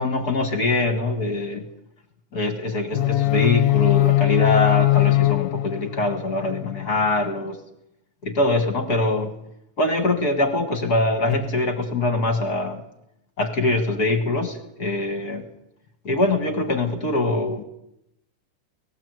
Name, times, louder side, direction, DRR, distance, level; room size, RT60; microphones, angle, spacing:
voice 1, 0.0-1.6 2.3-7.6 8.2-9.3 9.8-12.8 13.4-15.4 16.0-17.6, left 2 dB, 40° left, 6 dB, 1.6 m, -23 dB
sound 1, 2.9-6.9, left 18 dB, 90° left, 2.4 m, -21 dB
19.0 x 17.5 x 8.1 m, 0.83 s
omnidirectional pair, 3.5 m